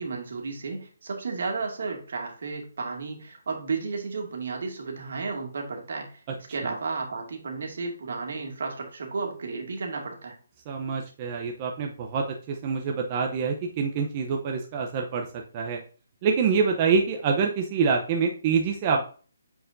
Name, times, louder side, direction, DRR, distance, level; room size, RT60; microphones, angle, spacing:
voice 1, 0.0-10.4, right 4 dB, 65° right, 2 dB, 2.2 m, -33 dB
voice 2, 10.7-15.3 15.5-15.8 16.2-19.0, right 5 dB, 30° right, 2 dB, 0.7 m, -26 dB
8.9 x 4.7 x 2.6 m, 0.41 s
hypercardioid pair, 160°, 0 cm